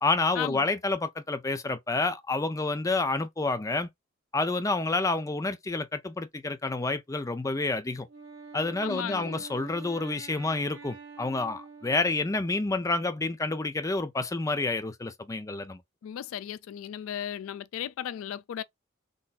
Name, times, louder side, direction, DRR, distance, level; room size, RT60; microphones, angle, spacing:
voice 1, 0.0-3.9 4.3-8.1 8.5-15.8, left 3 dB, 15° left, 0.4 m, -29 dB
Wind instrument woodwind instrument, 8.1-12.8, right 4 dB, 70° right, 1.6 m, -47 dB
voice 2, 8.8-9.4 16.0-18.6, left 9 dB, 80° left, 0.3 m, -35 dB
3.9 x 2.6 x 2.4 m
head